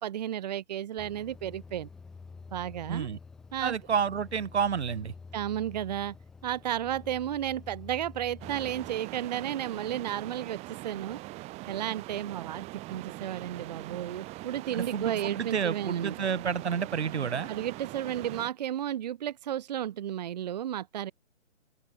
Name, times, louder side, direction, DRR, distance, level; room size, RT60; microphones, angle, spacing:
voice 1, 0.0-1.9 2.5-3.1 3.5-3.8 5.3-6.2 6.4-11.2 11.7-16.1 17.5-21.1, right 11 dB, 35° right, 1.2 m, -33 dB
sound 1, 1.0-9.0, left 4 dB, ahead, 0.5 m, -48 dB
voice 2, 2.9-3.2 3.6-5.1 14.7-17.5, right 7 dB, 65° right, 1.4 m, -30 dB
sound 2, 8.4-18.5, right 20 dB, 15° right, 4.1 m, -42 dB
open air
hypercardioid pair, 150°, 36 cm